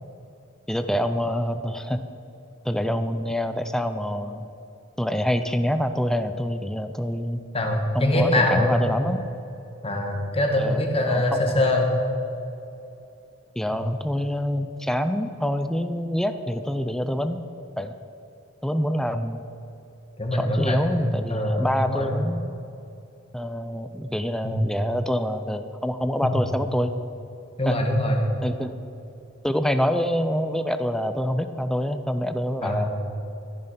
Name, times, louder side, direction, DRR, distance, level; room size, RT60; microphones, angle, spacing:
voice 1, 0.7-2.0 2.6-4.5 5.0-7.4 7.9-9.2 10.6-11.6 13.6-17.4 17.8-17.9 18.6-19.5 20.3-22.4 23.3-26.9 27.7-27.8 28.4-28.7 29.4-32.9, equal, 5° left, 9 dB, 0.5 m, -26 dB
voice 2, 7.5-8.8 9.8-11.9 13.7-13.8 20.2-22.1 24.4-24.6 26.2-26.3 27.6-28.2 32.6-32.9, left 1 dB, 30° left, 1 dB, 1.9 m, -23 dB
14.5 x 9.9 x 5.7 m, 2.8 s
head